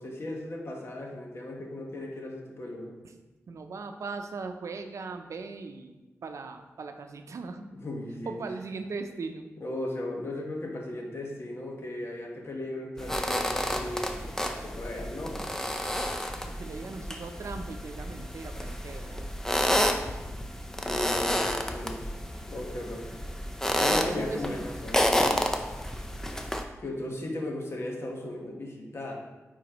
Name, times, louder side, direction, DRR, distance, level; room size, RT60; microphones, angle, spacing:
voice 1, 0.0-2.9 7.8-8.4 9.6-15.5 20.8-22.1 22.5-23.1 23.7-25.5 26.8-29.1, left 1 dB, 55° left, 0 dB, 1.4 m, -36 dB
voice 2, 3.5-7.7 8.2-9.5 16.6-19.3 23.9-24.7, right 4 dB, 70° right, 6 dB, 0.6 m, -39 dB
sound 1, 13.0-26.6, equal, 10° left, 0.6 m, -30 dB
9.3 x 4.2 x 3.0 m, 1.1 s
cardioid pair, 65°, 5 cm